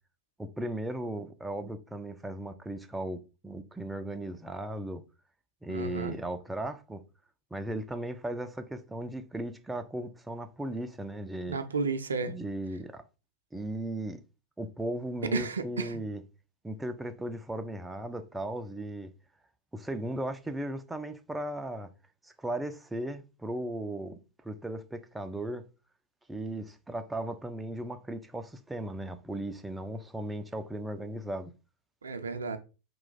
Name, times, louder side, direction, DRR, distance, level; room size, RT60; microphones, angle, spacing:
voice 1, 0.4-5.0 5.6-7.0 7.5-11.6 12.3-13.0 13.5-14.2 14.6-16.2 16.6-19.1 19.7-21.9 22.2-25.6 26.3-31.5, right 1 dB, 5° right, 0.3 m, -36 dB
voice 2, 5.7-6.2 11.5-12.3 15.3-16.0 32.0-32.6, right 4 dB, 70° right, 0.4 m, -32 dB
3.0 x 2.2 x 3.9 m
figure-of-eight pair, 90°, 0 cm